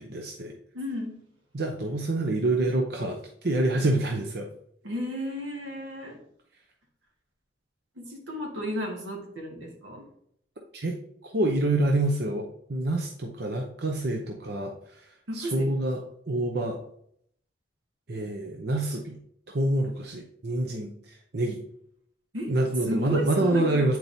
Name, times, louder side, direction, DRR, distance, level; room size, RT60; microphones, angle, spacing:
voice 1, 0.1-0.5 1.5-4.5 10.7-11.0 11.2-15.0 15.3-16.8 18.1-19.2 19.5-21.6 22.5-24.0, right 2 dB, 55° right, 2 dB, 0.7 m, -27 dB
voice 2, 0.7-1.2 4.8-6.2 8.0-10.1 15.3-15.7 22.3-22.5 22.9-23.9, equal, 85° right, 0 dB, 1.7 m, -33 dB
8.8 x 4.6 x 2.7 m, 0.68 s
head